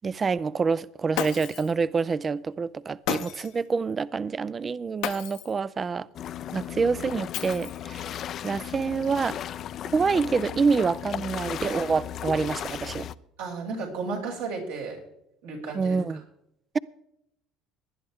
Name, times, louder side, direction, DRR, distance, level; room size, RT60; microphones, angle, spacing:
voice 1, 0.0-6.1 6.5-8.2 8.4-9.4 9.9-13.1 15.7-16.2, right 5 dB, 30° right, 0.4 m, -27 dB
Shatter, 1.1-1.8 3.1-3.6 5.0-5.6 7.3-8.0, left 12 dB, 70° left, 0.9 m, -33 dB
sound 1, 6.1-13.1, left 10 dB, 55° left, 0.5 m, -36 dB
voice 2, 13.4-15.0 15.4-16.0, right 4 dB, 90° right, 6.2 m, -33 dB
19.0 x 10.5 x 3.6 m
hypercardioid pair, 75°, 0 cm